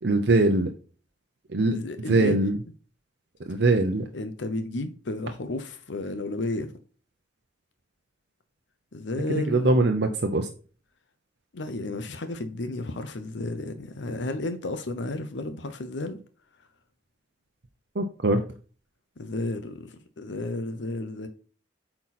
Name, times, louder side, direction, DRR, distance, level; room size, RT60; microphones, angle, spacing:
voice 1, 0.0-0.7 1.5-1.8 2.1-2.6 3.5-4.0 9.3-10.5 17.9-18.4, right 2 dB, 60° right, 0.7 m, -22 dB
voice 2, 1.7-2.4 4.1-6.7 8.9-9.8 11.5-16.2 19.2-21.3, left 2 dB, 70° left, 0.7 m, -32 dB
8.3 x 4.5 x 4.2 m
head